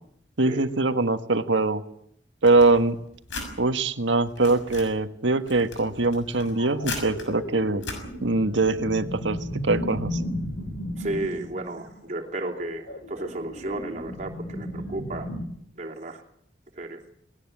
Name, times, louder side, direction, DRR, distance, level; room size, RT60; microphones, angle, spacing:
voice 1, 0.4-1.8 2.4-3.0 3.6-7.8 8.2-10.2, right 3 dB, 85° right, 10 dB, 1.6 m, -23 dB
sound 1, 2.5-3.5 4.1-4.9 5.4-7.3 7.8-8.0, left 3 dB, 90° left, 6.5 m, -37 dB
sound 2, 6.4-15.4, equal, 75° left, 3.7 m, -35 dB
voice 2, 11.0-15.3 15.8-16.2 16.8-17.0, right 1 dB, 40° right, 1 dB, 3.0 m, -33 dB
19.5 x 18.0 x 9.9 m, 0.70 s
head